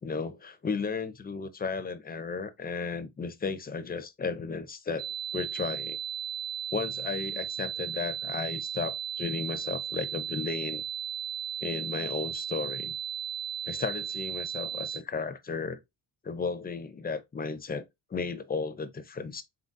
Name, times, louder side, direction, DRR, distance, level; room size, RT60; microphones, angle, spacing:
voice 1, 0.0-6.0 6.7-10.8 11.6-13.0 13.7-15.8 16.2-17.8 18.1-19.4, left 4 dB, 20° left, 0.4 m, -34 dB
sound 1, 5.0-15.0, right 9 dB, 45° right, 0.9 m, -35 dB
3.9 x 3.9 x 2.4 m
wide cardioid pair, 160°, 46 cm